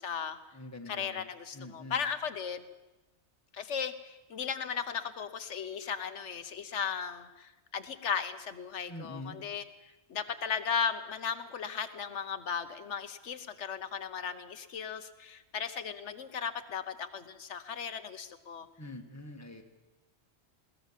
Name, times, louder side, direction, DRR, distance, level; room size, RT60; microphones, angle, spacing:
voice 1, 0.0-0.4 0.9-2.6 3.5-9.6 10.1-18.7, left 6 dB, 80° left, 10 dB, 1.3 m, -36 dB
voice 2, 0.5-1.3 1.5-2.0 8.9-9.4 18.8-19.6, left 1 dB, 15° left, 4 dB, 1.8 m, -44 dB
21.0 x 17.0 x 7.4 m, 1.0 s
omnidirectional pair, 1.2 m